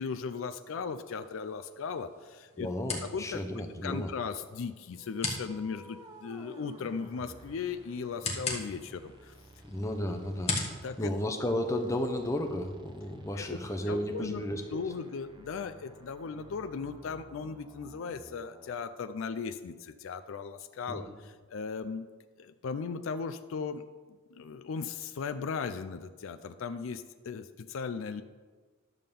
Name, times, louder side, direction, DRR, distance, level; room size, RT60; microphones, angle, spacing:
voice 1, 0.0-2.7 3.0-3.4 3.8-9.3 10.8-11.1 13.4-13.6 13.9-14.4 14.7-22.1 22.4-23.8 24.3-28.2, left 5 dB, 75° left, 9 dB, 0.4 m, -37 dB
sound 1, 1.1-12.1, left 4 dB, 30° left, 1.1 m, -41 dB
voice 2, 2.6-4.1 9.6-10.5 11.0-14.8 20.9-21.0, left 1 dB, 15° left, 4 dB, 0.7 m, -33 dB
sound 2, 5.0-18.8, right 1 dB, 20° right, 0.6 m, -54 dB
10.5 x 3.7 x 6.8 m, 1.4 s
head